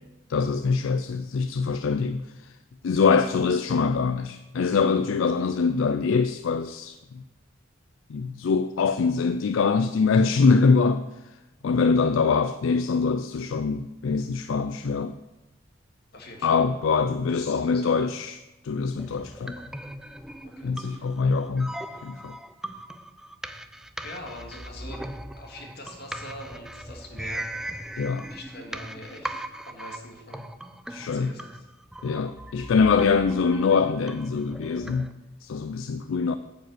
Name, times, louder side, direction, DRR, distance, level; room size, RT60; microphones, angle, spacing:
voice 1, 0.3-2.5 2.8-7.2 8.1-11.0 11.6-15.2 16.4-18.4 18.6-19.6 20.6-21.7 22.0-22.4 28.0-28.2 30.9-31.3 32.0-35.1 35.4-36.4, left 5 dB, 70° left, 0.4 m, -24 dB
voice 2, 16.1-16.7 17.3-18.1 20.6-21.1 24.0-25.1 25.4-27.5 28.3-30.5 31.1-31.7, left 1 dB, 50° left, 1.9 m, -43 dB
sound 1, 19.0-35.1, right 1 dB, 5° right, 0.4 m, -39 dB
9.1 x 5.2 x 7.7 m
head